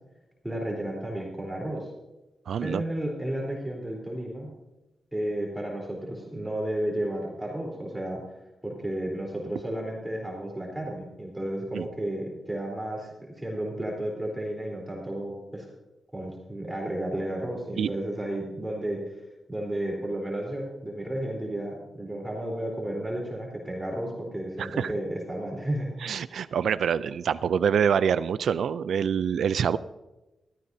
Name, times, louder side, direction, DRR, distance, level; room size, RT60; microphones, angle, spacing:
voice 1, 0.4-1.9 2.6-4.5 5.1-8.2 8.6-13.1 13.4-15.7 16.1-25.9, right 1 dB, 10° right, -2 dB, 3.7 m, -32 dB
voice 2, 2.5-2.8 11.7-11.9 17.8-17.9 24.6-24.9 26.0-29.8, right 7 dB, 80° right, 15 dB, 0.3 m, -25 dB
16.5 x 14.0 x 2.7 m, 1.0 s
cardioid pair, 70°, 0 cm